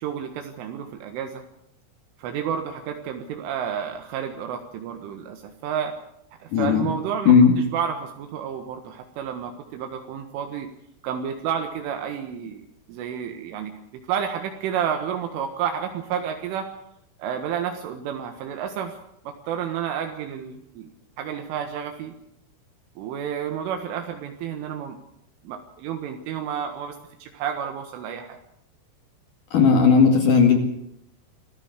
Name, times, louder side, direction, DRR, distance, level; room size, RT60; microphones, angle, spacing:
voice 1, 0.0-1.4 2.2-6.0 6.4-10.7 11.0-13.7 14.1-16.7 17.2-18.9 19.3-20.9 21.2-22.1 23.0-25.0 25.4-28.4, right 8 dB, 80° right, 5 dB, 4.0 m, -30 dB
voice 2, 6.5-6.9 7.3-7.5 29.5-30.6, left 6 dB, 50° left, 5 dB, 3.2 m, -16 dB
25.5 x 15.5 x 8.2 m, 0.74 s
omnidirectional pair, 5.7 m